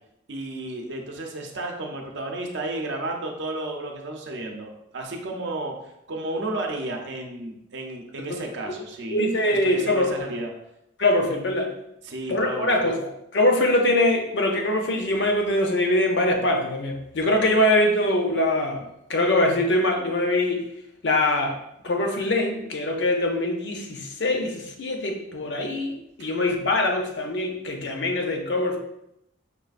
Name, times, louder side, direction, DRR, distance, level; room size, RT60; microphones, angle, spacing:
voice 1, 0.3-5.7 6.1-9.2 9.5-10.5 12.0-12.9 26.2-26.3, right 2 dB, 65° right, 2 dB, 0.6 m, -32 dB
voice 2, 9.1-10.1 11.0-11.7 12.3-20.7 21.0-21.6 21.8-28.8, left 1 dB, 60° left, 2 dB, 0.6 m, -23 dB
5.3 x 2.4 x 2.4 m, 0.82 s
head